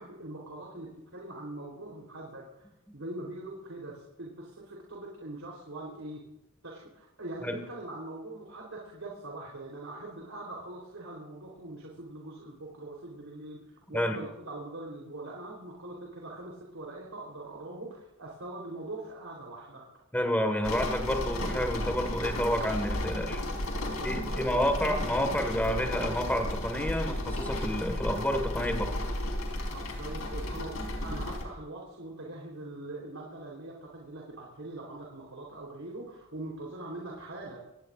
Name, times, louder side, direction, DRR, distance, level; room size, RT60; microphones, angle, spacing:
voice 1, 0.0-6.2 6.6-19.9 23.8-24.8 29.7-37.6, right 2 dB, 75° right, -3 dB, 3.8 m, -42 dB
voice 2, 20.1-23.4 24.0-28.9, equal, 10° left, 4 dB, 1.8 m, -29 dB
sound 1, 20.6-31.5, left 1 dB, 85° left, 4.3 m, -34 dB
25.5 x 18.5 x 2.6 m, 0.89 s
head